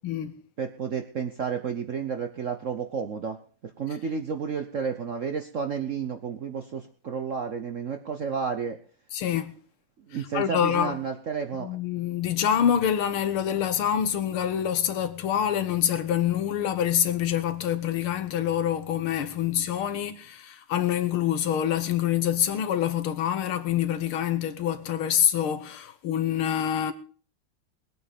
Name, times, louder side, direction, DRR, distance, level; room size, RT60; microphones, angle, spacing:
voice 1, 0.0-0.3 9.1-9.5 10.3-11.0 11.6-26.9, left 10 dB, 80° left, 1.9 m, -26 dB
voice 2, 0.6-3.4 3.8-8.8 10.1-11.7, right 6 dB, 55° right, 0.8 m, -31 dB
20.0 x 8.6 x 5.1 m
omnidirectional pair, 2.3 m